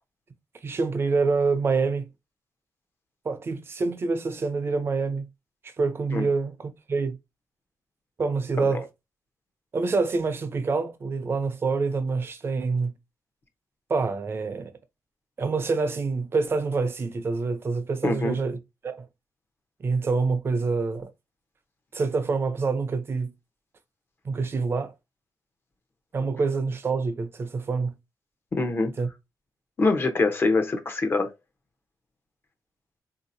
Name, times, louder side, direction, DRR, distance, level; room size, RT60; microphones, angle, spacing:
voice 1, 0.6-2.1 3.2-5.3 5.6-7.2 8.2-8.9 9.7-12.9 13.9-14.7 15.4-18.6 18.8-19.1 19.8-21.1 21.9-23.3 24.2-24.9 26.1-27.9 29.0-29.1, right 4 dB, 35° right, 0.6 m, -26 dB
voice 2, 18.0-18.4 28.5-28.9 29.8-31.3, left 3 dB, 35° left, 0.8 m, -24 dB
3.9 x 2.8 x 2.6 m
wide cardioid pair, 155°, 7 cm